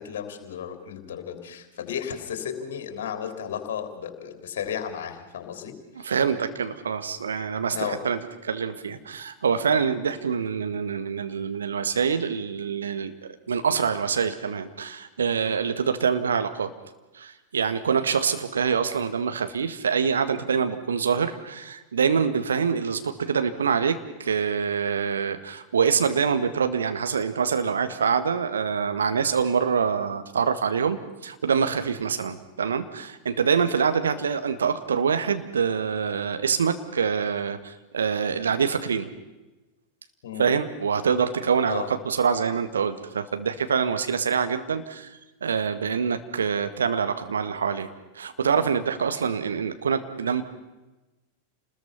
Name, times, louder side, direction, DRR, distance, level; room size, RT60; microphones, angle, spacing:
voice 1, 0.0-6.1 7.7-8.0 40.2-40.5 41.7-41.9, left 8 dB, 55° left, 7 dB, 3.4 m, -34 dB
voice 2, 6.0-13.1 13.5-16.7 17.1-39.1 40.4-45.1 45.4-47.9 48.1-50.4, right 6 dB, 70° right, 8 dB, 1.8 m, -25 dB
29.0 x 20.5 x 5.8 m, 1.1 s
figure-of-eight pair, 90°, 0 cm